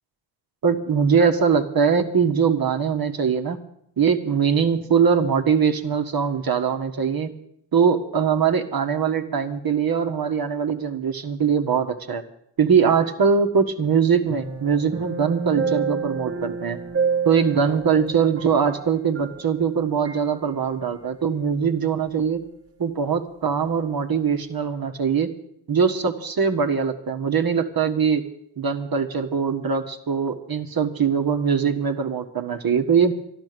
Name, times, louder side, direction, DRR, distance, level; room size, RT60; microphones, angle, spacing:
voice 1, 0.6-3.6 4.0-7.3 7.7-12.2 12.6-16.8 17.3-22.4 22.8-25.3 25.7-28.2 28.6-33.1, right 6 dB, 50° right, 5 dB, 1.6 m, -22 dB
sound 1, 14.3-19.7 20.1-20.2, right 5 dB, 30° right, 1.2 m, -29 dB
12.5 x 11.5 x 6.8 m, 0.73 s
supercardioid pair, 60°, 47 cm